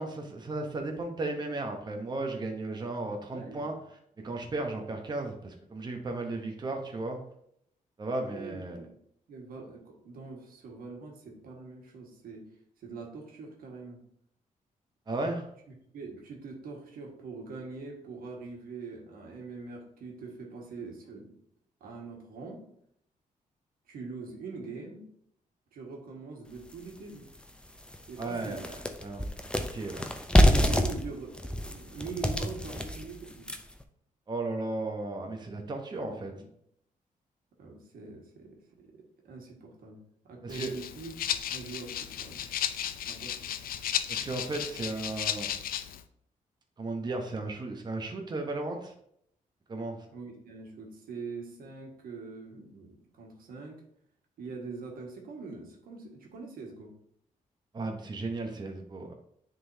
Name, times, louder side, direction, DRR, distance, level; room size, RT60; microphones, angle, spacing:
voice 1, 0.0-3.7 4.2-7.2 8.0-8.8 15.1-15.5 28.2-28.7 29.0-30.1 34.3-36.3 40.4-40.7 44.1-45.5 46.8-48.9 49.7-50.0 57.7-59.1, right 2 dB, 30° right, 3 dB, 0.8 m, -35 dB
voice 2, 3.3-3.7 8.3-8.9 9.3-12.5 12.8-14.0 15.9-21.4 21.8-22.6 23.9-25.1 25.7-27.3 28.1-28.7 30.4-33.6 35.9-36.5 37.6-38.9 39.3-41.1 41.5-42.5 43.0-43.5 50.1-53.8 54.4-56.9, right 4 dB, 90° right, 0 dB, 1.6 m, -43 dB
sound 1, 26.7-26.8 27.3-27.4 27.8-33.8, equal, 5° left, 0.5 m, -27 dB
Rattle (instrument), 40.5-46.0, left 10 dB, 90° left, 0.4 m, -34 dB
9.8 x 3.9 x 2.7 m, 0.71 s
cardioid pair, 130°, 15 cm